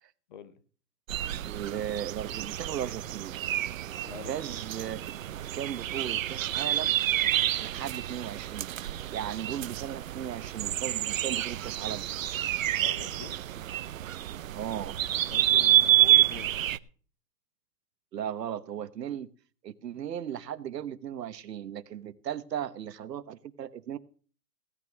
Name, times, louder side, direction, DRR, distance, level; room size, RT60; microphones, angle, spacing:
sound 1, 1.1-16.8, right 12 dB, 55° right, 0.6 m, -28 dB
voice 1, 1.4-3.4 4.3-5.0 5.5-6.9 7.6-8.7 9.1-12.0 14.6-15.0 18.1-19.3 19.6-24.0, right 10 dB, 80° right, 14 dB, 1.2 m, -36 dB
voice 2, 12.8-13.4 15.3-16.6, left 8 dB, 30° left, 14 dB, 0.8 m, -44 dB
16.5 x 6.2 x 7.1 m, 0.43 s
hypercardioid pair, 160°, 48 cm